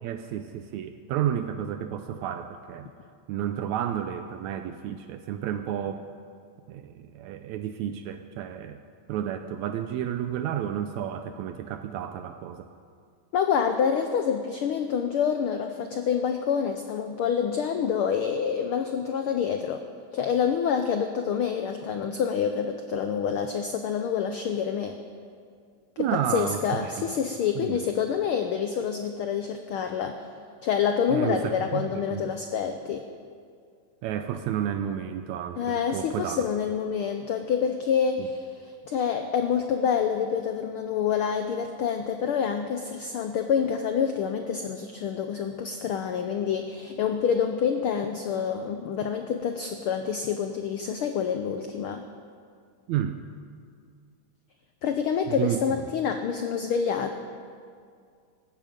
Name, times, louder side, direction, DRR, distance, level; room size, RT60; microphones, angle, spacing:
voice 1, 0.0-2.9 3.3-6.1 6.7-8.8 9.1-12.7 26.0-27.1 27.6-27.8 31.1-32.3 34.0-36.4 38.2-38.3 52.9-53.2 55.3-55.8, right 10 dB, 80° right, 8 dB, 1.9 m, -31 dB
voice 2, 13.3-19.8 20.1-25.0 26.0-30.2 30.6-33.0 35.6-52.0 54.8-57.1, left 7 dB, 90° left, 6 dB, 1.1 m, -27 dB
18.5 x 14.5 x 5.2 m, 2.2 s
omnidirectional pair, 3.4 m